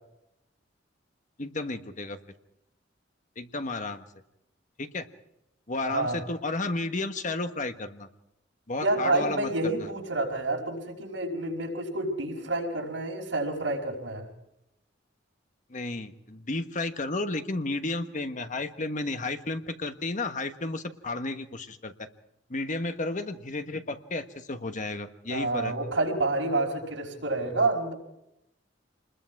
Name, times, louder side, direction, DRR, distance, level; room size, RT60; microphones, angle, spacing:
voice 1, 1.4-2.2 3.4-4.0 4.8-5.1 5.7-8.1 8.7-9.9 15.7-21.9 22.5-25.7, left 2 dB, 45° left, 8 dB, 1.3 m, -32 dB
voice 2, 5.8-6.2 8.8-14.3 25.3-27.9, right 2 dB, 85° right, 1 dB, 5.3 m, -28 dB
27.5 x 21.0 x 4.8 m, 0.85 s
head